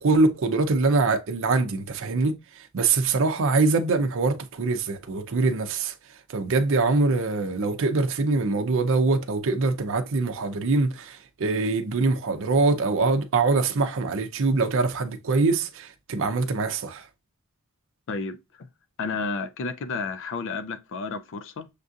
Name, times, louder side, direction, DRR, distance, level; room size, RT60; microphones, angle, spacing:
voice 1, 0.0-5.9 6.3-17.1, right 3 dB, 60° right, 0.5 m, -23 dB
voice 2, 18.1-18.7 19.0-21.7, left 4 dB, 60° left, 0.4 m, -32 dB
6.5 x 2.4 x 2.6 m
head